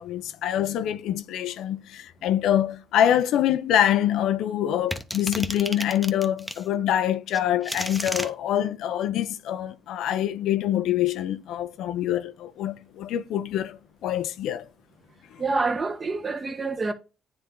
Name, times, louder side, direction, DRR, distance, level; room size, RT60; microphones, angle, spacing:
voice 1, 0.0-14.7 15.3-15.4, left 11 dB, 85° left, 0.6 m, -25 dB
sound 1, 4.9-6.6 7.3-8.3, equal, 5° left, 0.8 m, -32 dB
voice 2, 15.4-16.9, right 3 dB, 35° right, 1.2 m, -27 dB
9.6 x 3.3 x 3.7 m
cardioid pair, 90°, 0 cm